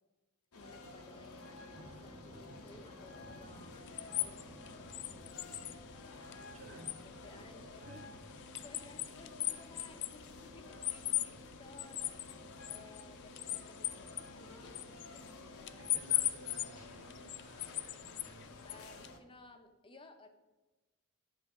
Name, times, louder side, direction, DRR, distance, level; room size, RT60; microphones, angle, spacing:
sound 1, 0.5-19.2, left 2 dB, 70° left, 0.9 m, -52 dB
voice 1, 0.6-12.3 12.7-16.0 18.6-20.3, left 2 dB, 25° left, 6 dB, 0.7 m, -58 dB
Thunder, 1.1-14.4 14.8-15.1 15.5-15.6 16.5-17.0, equal, 15° right, 1.5 m, -60 dB
sound 2, 3.5-19.1, left 15 dB, 55° left, 0.4 m, -41 dB
voice 2, 6.5-7.0 7.6-8.0 15.6-18.5, right 2 dB, 65° right, 0 dB, 1.7 m, -56 dB
9.8 x 3.4 x 5.9 m, 1.1 s
head